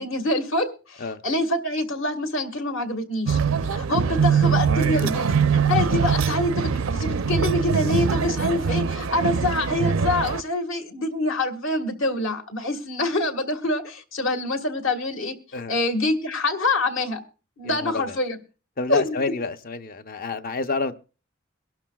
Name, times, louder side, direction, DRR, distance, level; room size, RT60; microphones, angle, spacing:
voice 1, 0.0-3.4 3.7-15.3 15.7-17.2 17.6-18.4 18.9-19.3, left 2 dB, 65° left, 1.7 m, -26 dB
sound 1, 3.3-10.4, right 6 dB, 75° right, 0.5 m, -22 dB
voice 2, 17.6-18.2 18.8-20.9, left 4 dB, 45° left, 0.6 m, -29 dB
23.0 x 12.0 x 2.3 m
head